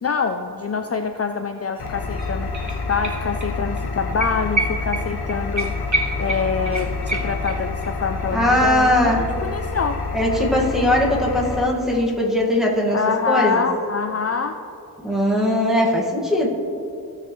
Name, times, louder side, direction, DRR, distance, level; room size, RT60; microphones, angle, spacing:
voice 1, 0.0-10.0 12.9-14.6, left 5 dB, 40° left, 7 dB, 0.4 m, -25 dB
Engine, 1.8-11.6, left 4 dB, 90° left, 0.8 m, -28 dB
sound 1, 1.8-1.9 2.1-3.5 3.8-3.9 4.2-7.9 8.2-8.3, right 2 dB, 50° right, 1.5 m, -28 dB
voice 2, 8.3-9.2 10.1-13.0 13.3-13.6 15.0-16.5, left 1 dB, ahead, -3 dB, 1.8 m, -19 dB
16.0 x 6.7 x 3.2 m, 2.7 s
wide cardioid pair, 55°, 37 cm